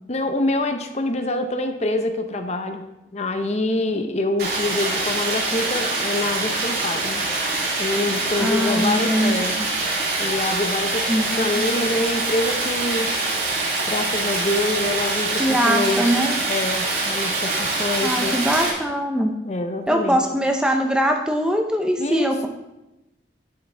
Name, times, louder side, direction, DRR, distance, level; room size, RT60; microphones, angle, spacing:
voice 1, 0.1-7.3 7.8-9.6 10.2-13.1 13.9-18.4 19.5-20.2 22.0-22.5, left 2 dB, 35° left, 7 dB, 0.7 m, -26 dB
Stream, 4.4-18.7, right 2 dB, 55° right, 3.1 m, -24 dB
voice 2, 8.4-9.5 11.1-11.7 15.4-16.3 18.0-19.3 19.9-22.5, equal, 5° right, 3 dB, 0.7 m, -22 dB
10.5 x 9.4 x 3.4 m, 0.96 s
head